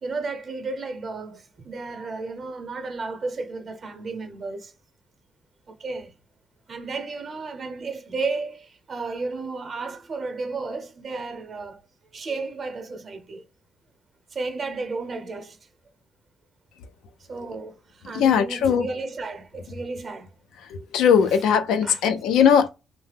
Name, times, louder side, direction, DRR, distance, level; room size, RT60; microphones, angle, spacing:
voice 1, 0.0-4.7 5.8-6.1 6.7-11.8 12.1-13.4 14.3-15.6 17.3-17.7 18.0-20.3 21.3-21.4 21.8-22.0, right 3 dB, 45° right, 0.8 m, -33 dB
voice 2, 18.1-18.9 20.7-22.7, left 7 dB, 85° left, 0.4 m, -19 dB
2.8 x 2.0 x 3.3 m
cardioid pair, 90°, 0 cm